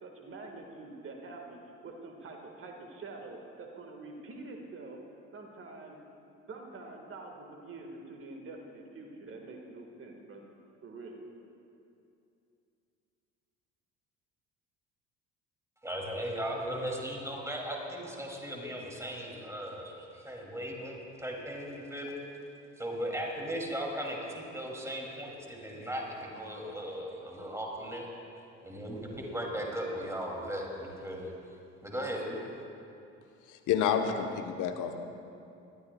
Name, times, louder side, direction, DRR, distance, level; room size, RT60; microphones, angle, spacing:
voice 1, 0.0-5.0 5.3-6.0 6.5-10.4 10.8-11.2, right 3 dB, 35° right, 2 dB, 1.7 m, -46 dB
voice 2, 15.8-22.2 22.8-28.1 28.6-31.3 31.8-32.4, equal, 5° right, -1 dB, 2.7 m, -37 dB
voice 3, 33.5-35.0, left 8 dB, 50° left, 6 dB, 1.1 m, -29 dB
21.0 x 13.0 x 2.3 m, 2.6 s
figure-of-eight pair, 55°, 38 cm